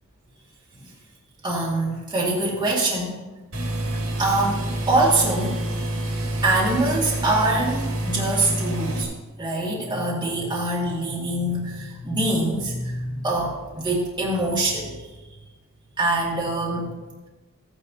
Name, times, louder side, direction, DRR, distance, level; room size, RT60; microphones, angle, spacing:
voice 1, 1.4-3.2 4.2-5.6 6.4-9.1 9.4-15.2 16.0-16.9, right 2 dB, 20° right, -5 dB, 1.9 m, -24 dB
sound 1, 3.5-9.0, right 1 dB, 75° right, 1.8 m, -27 dB
14.0 x 9.9 x 2.7 m, 1.2 s
head